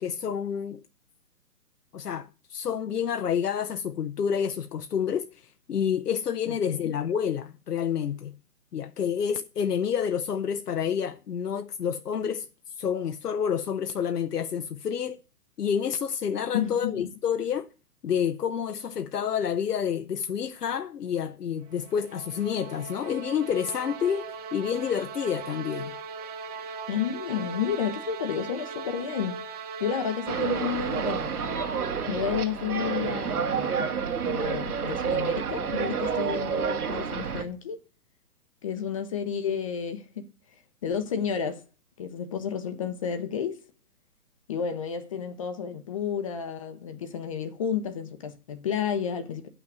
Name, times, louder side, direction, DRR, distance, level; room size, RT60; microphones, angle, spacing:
voice 1, 0.0-0.8 1.9-8.3 8.7-12.5 12.8-15.2 15.6-17.7 18.0-26.0, left 8 dB, 85° left, 0.8 m, -29 dB
voice 2, 6.5-6.9 16.5-17.1 26.9-29.4 29.8-31.3 32.1-34.0 34.2-37.8 38.6-40.3 40.8-41.6 42.0-43.6 44.5-49.5, left 7 dB, 20° left, 0.7 m, -31 dB
sound 1, 21.7-32.3, right 5 dB, 25° right, 0.9 m, -39 dB
sound 2, 30.3-37.4, right 7 dB, 70° right, 1.9 m, -29 dB
9.4 x 6.0 x 7.9 m
hypercardioid pair, 145°, 46 cm